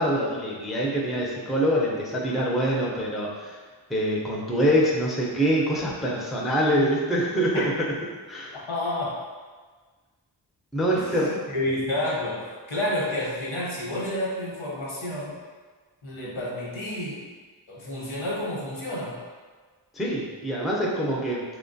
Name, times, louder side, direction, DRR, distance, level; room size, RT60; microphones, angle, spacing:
voice 1, 0.0-3.6 3.9-7.6 8.3-8.6 10.7-11.3 19.9-21.4, equal, ahead, -3 dB, 0.4 m, -25 dB
voice 2, 8.5-9.2 10.9-15.4 16.0-17.2 17.7-19.2, left 1 dB, 80° left, -6 dB, 0.9 m, -30 dB
3.0 x 2.2 x 2.6 m, 1.4 s
wide cardioid pair, 40°, 46 cm